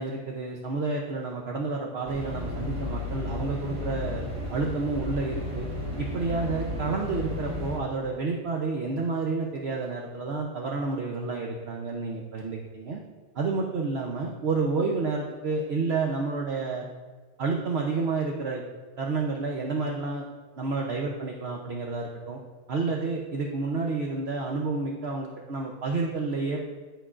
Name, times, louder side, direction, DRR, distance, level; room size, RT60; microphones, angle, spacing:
voice 1, 0.0-4.2 4.5-5.7 6.0-13.0 13.4-16.8 17.4-18.6 19.0-20.2 20.6-22.4 22.7-26.6, right 4 dB, 60° right, 0 dB, 0.6 m, -30 dB
sound 1, 2.1-7.8, left 1 dB, 20° right, 1.0 m, -33 dB
11.0 x 5.2 x 2.4 m, 1.4 s
omnidirectional pair, 1.8 m